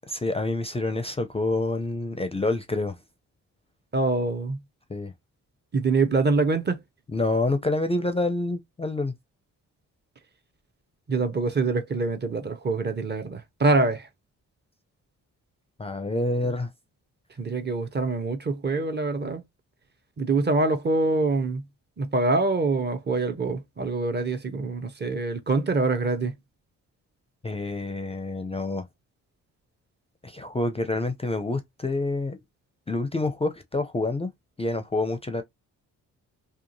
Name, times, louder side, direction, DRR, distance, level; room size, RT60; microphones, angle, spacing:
voice 1, 0.1-3.0 4.9-5.1 7.1-9.1 15.8-16.7 27.4-28.9 30.2-32.4 32.9-34.3 34.6-35.4, left 2 dB, 15° left, 0.4 m, -27 dB
voice 2, 3.9-4.6 5.7-6.8 11.1-14.1 17.4-19.4 20.2-21.6 22.0-26.4, right 3 dB, 30° right, 0.6 m, -25 dB
2.8 x 2.4 x 2.6 m
supercardioid pair, 50°, 38 cm